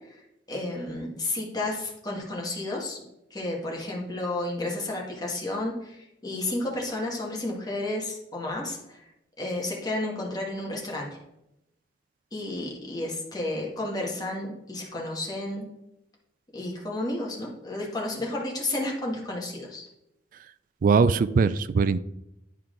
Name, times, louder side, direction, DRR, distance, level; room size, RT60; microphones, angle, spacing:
voice 1, 0.5-3.0 3.3-9.1 9.4-11.1 12.3-15.6 16.5-19.9, left 2 dB, 20° left, -2 dB, 1.7 m, -32 dB
voice 2, 20.8-22.0, right 5 dB, 50° right, 16 dB, 0.3 m, -21 dB
10.0 x 4.5 x 3.8 m, 0.86 s
head